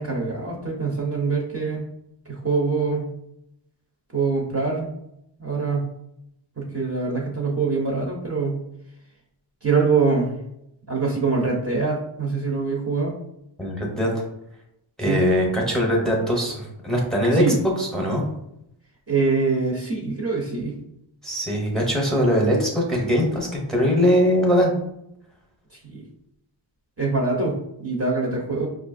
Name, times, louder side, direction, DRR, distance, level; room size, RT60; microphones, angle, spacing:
voice 1, 0.0-1.8 2.3-3.1 4.1-4.9 5.4-5.9 6.6-8.6 9.6-10.3 10.9-13.1 15.0-15.3 17.3-17.6 19.1-20.8 25.8-26.0 27.0-28.7, right 4 dB, 30° right, -2 dB, 0.7 m, -24 dB
voice 2, 13.6-14.2 15.0-18.2 21.2-24.7, equal, ahead, -1 dB, 0.8 m, -21 dB
5.2 x 2.4 x 2.5 m, 0.79 s
wide cardioid pair, 120°, 48 cm